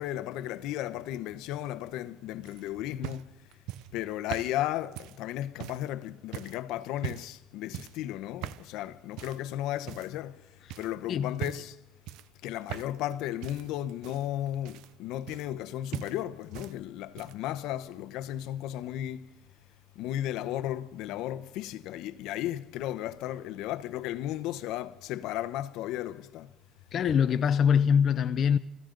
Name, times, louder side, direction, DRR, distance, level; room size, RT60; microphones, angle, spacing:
voice 1, 0.0-3.3 3.9-10.4 10.8-11.8 12.4-19.3 20.0-26.5, left 13 dB, 70° left, 0.8 m, -35 dB
sound 1, 2.4-5.9 6.3-6.6 7.0-7.4 7.7-8.0 8.4-8.7 9.2-9.5 9.9-10.4 10.7-10.9 11.3-11.8 12.1-13.1 13.4-15.7 15.9-16.7 17.0-17.5 18.4-18.5, right 14 dB, 70° right, 0.5 m, -41 dB
voice 2, 26.9-28.6, left 7 dB, 40° left, 0.5 m, -23 dB
25.0 x 15.0 x 3.8 m
cardioid pair, 155°, 0 cm